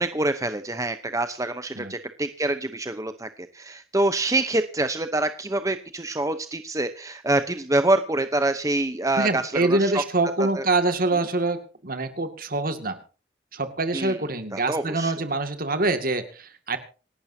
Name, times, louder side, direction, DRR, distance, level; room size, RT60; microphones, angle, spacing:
voice 1, 0.0-3.3 3.5-10.0 10.4-10.6 13.9-14.1 14.5-15.1, right 2 dB, 15° right, 9 dB, 0.9 m, -26 dB
voice 2, 9.2-13.0 13.5-16.8, right 2 dB, 50° right, 8 dB, 2.3 m, -25 dB
27.0 x 12.0 x 2.8 m, 0.37 s
head